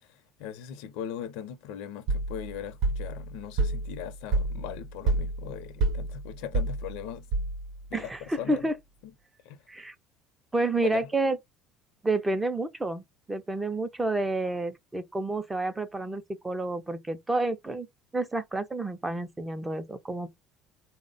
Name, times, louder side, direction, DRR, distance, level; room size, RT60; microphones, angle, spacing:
voice 1, 0.1-7.3 7.9-8.7 9.4-9.6 10.8-11.1, left 9 dB, 80° left, 0.6 m, -39 dB
sound 1, 2.1-7.9, right 2 dB, 60° right, 0.6 m, -29 dB
voice 2, 7.9-8.7 9.7-9.9 10.5-11.4 12.0-17.9 18.1-20.3, right 2 dB, 10° right, 0.4 m, -29 dB
4.0 x 2.0 x 3.8 m
cardioid pair, 170°, 0 cm